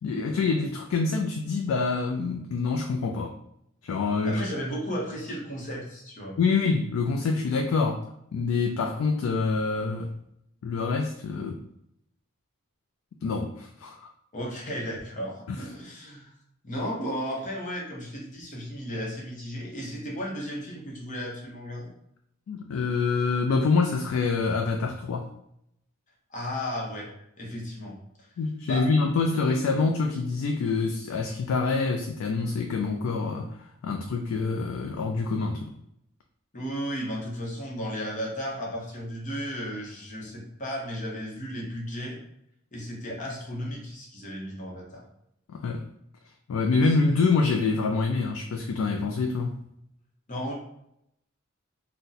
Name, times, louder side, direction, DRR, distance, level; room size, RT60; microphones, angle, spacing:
voice 1, 0.0-3.3 3.8-4.4 6.4-8.0 8.3-10.1 10.6-11.6 13.2-14.1 15.5-15.6 22.5-25.3 28.4-33.5 33.8-35.7 45.5-45.9 46.5-49.6, left 4 dB, 80° left, 3 dB, 0.3 m, -26 dB
voice 2, 4.2-6.4 14.3-16.3 16.6-21.9 26.3-27.1 27.4-28.0 28.6-28.8 36.5-42.2 42.7-45.0 46.9-47.0 50.3-50.5, equal, 40° left, -2 dB, 0.8 m, -34 dB
2.6 x 2.1 x 3.8 m, 0.78 s
head